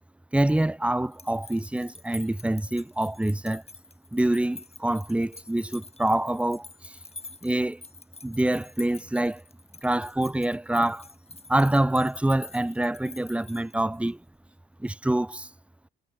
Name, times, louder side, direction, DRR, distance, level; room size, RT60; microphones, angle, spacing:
voice 1, 0.3-3.6 4.1-7.0 7.4-7.8 8.2-9.4 9.8-11.1 11.5-14.2 14.8-15.5, right 1 dB, 5° right, 0.6 m, -26 dB
sound 1, 1.0-14.1, left 3 dB, 20° left, 5.8 m, -47 dB
figure-of-eight pair, 45°, 32 cm